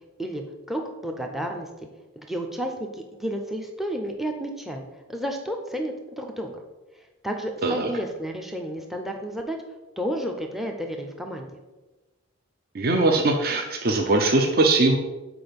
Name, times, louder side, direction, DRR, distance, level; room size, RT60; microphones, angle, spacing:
voice 1, 0.2-1.7 2.2-4.8 5.1-6.6 7.2-9.6 10.0-11.6, equal, ahead, 4 dB, 0.5 m, -31 dB
voice 2, 12.7-15.0, right 2 dB, 45° right, 3 dB, 0.6 m, -21 dB
6.0 x 4.7 x 5.2 m, 1.1 s
head